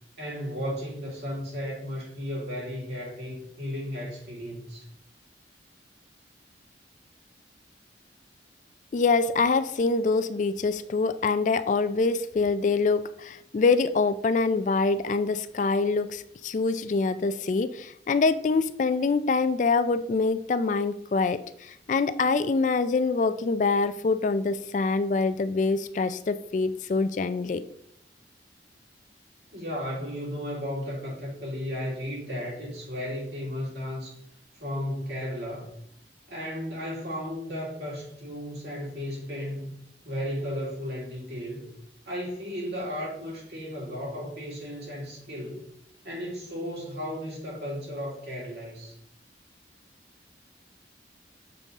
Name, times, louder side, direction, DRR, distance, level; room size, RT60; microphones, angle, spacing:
voice 1, 0.2-4.8 29.5-34.2 34.6-35.7 36.3-39.8 40.0-41.7 42.0-45.6 46.0-48.9, equal, 65° right, -4 dB, 3.0 m, -34 dB
voice 2, 8.9-27.6, left 4 dB, 45° left, 12 dB, 0.3 m, -25 dB
6.9 x 3.6 x 5.2 m, 0.72 s
head